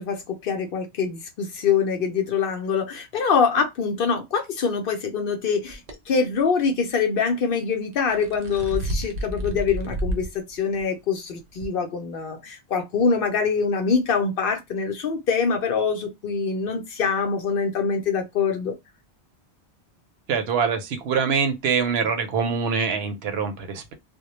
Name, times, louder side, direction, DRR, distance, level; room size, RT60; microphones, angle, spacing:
voice 1, 0.0-5.8 6.1-18.7, left 5 dB, 60° left, 0.7 m, -24 dB
sound 1, 5.7-5.9 7.9-10.3 10.7-10.8 11.6-11.7, right 1 dB, 50° right, 0.5 m, -29 dB
voice 2, 20.3-23.9, right 6 dB, 75° right, 0.8 m, -24 dB
2.1 x 2.1 x 2.9 m
omnidirectional pair, 1.1 m